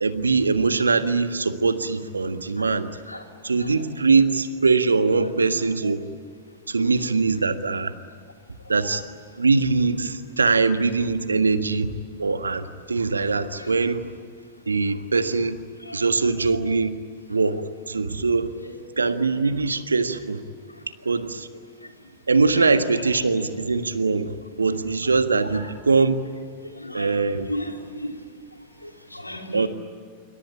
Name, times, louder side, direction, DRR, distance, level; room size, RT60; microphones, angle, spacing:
voice 1, 0.0-3.0 3.4-6.0 6.7-7.9 8.7-9.0 9.4-11.9 12.2-14.0 14.7-15.6 15.9-16.9 17.3-18.5 19.0-20.4 21.1-21.5 22.3-26.2 26.9-27.5 29.5-29.7, right 4 dB, 80° right, 10 dB, 1.6 m, -22 dB
voice 2, 26.8-27.1 27.5-28.2 28.8-29.7, left 1 dB, 90° left, 4 dB, 3.4 m, -34 dB
27.5 x 24.5 x 9.0 m, 2.1 s
figure-of-eight pair, 95°, 0 cm